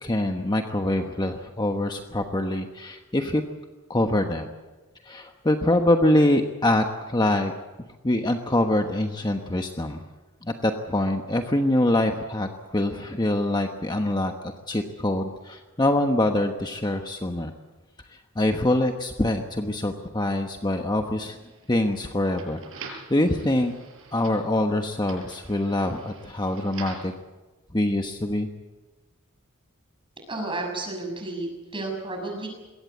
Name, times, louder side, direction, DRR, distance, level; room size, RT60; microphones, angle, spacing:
voice 1, 0.0-3.4 3.9-4.5 5.0-7.5 8.0-10.0 10.4-17.5 18.1-21.4 21.7-23.7 24.1-27.1 27.7-28.5, left 1 dB, 20° left, 5 dB, 1.1 m, -24 dB
sound 1, 21.3-27.2, right 4 dB, 65° right, 6.0 m, -45 dB
voice 2, 30.3-32.5, right 2 dB, 25° right, 3 dB, 6.7 m, -32 dB
22.0 x 18.0 x 8.4 m, 1.2 s
head